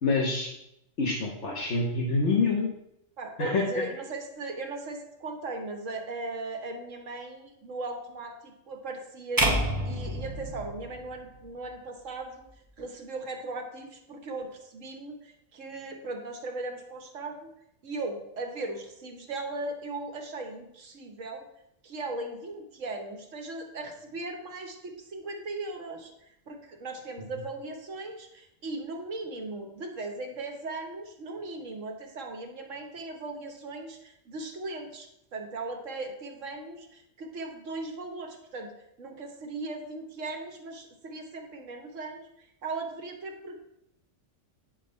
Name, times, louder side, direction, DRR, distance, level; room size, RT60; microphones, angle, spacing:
voice 1, 0.0-0.5 1.0-2.7 3.4-3.8, left 3 dB, 65° left, 0 dB, 1.4 m, -26 dB
voice 2, 3.2-12.4 12.8-17.5 17.8-21.4 21.8-35.1 35.3-38.7 39.0-43.5, right 2 dB, 90° right, 3 dB, 1.6 m, -38 dB
sound 1, 9.4-11.6, right 1 dB, 20° right, 0.8 m, -29 dB
9.1 x 4.1 x 5.6 m, 0.82 s
omnidirectional pair, 1.3 m